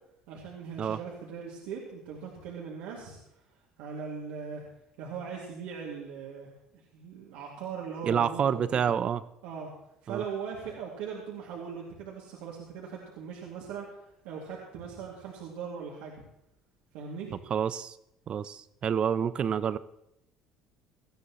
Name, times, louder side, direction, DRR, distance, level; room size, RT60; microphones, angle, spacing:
voice 1, 0.3-3.2 3.8-4.6 5.0-8.8 9.4-9.7 10.0-14.0 14.2-16.2 16.9-17.4, right 6 dB, 75° right, -4 dB, 2.4 m, -40 dB
voice 2, 8.0-9.2 10.1-10.2 17.5-18.0 18.3-19.8, right 8 dB, 45° right, 15 dB, 0.7 m, -28 dB
18.5 x 13.0 x 3.1 m, 0.81 s
hypercardioid pair, 75°, 2 cm